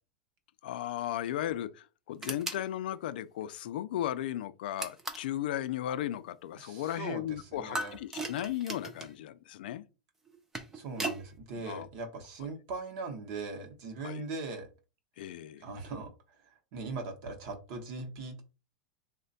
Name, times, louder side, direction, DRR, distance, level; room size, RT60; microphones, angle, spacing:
voice 1, 0.6-9.8 11.6-11.9 14.0-14.2 15.2-15.7, left 12 dB, 75° left, 0.4 m, -36 dB
sound 1, 2.2-2.7 4.8-5.3 7.7-9.1 10.3-11.2, right 2 dB, 5° right, 0.3 m, -37 dB
voice 2, 6.6-8.0 10.7-14.7 15.6-18.4, right 3 dB, 40° right, 0.8 m, -40 dB
3.2 x 2.1 x 3.9 m
supercardioid pair, 175°, 5 cm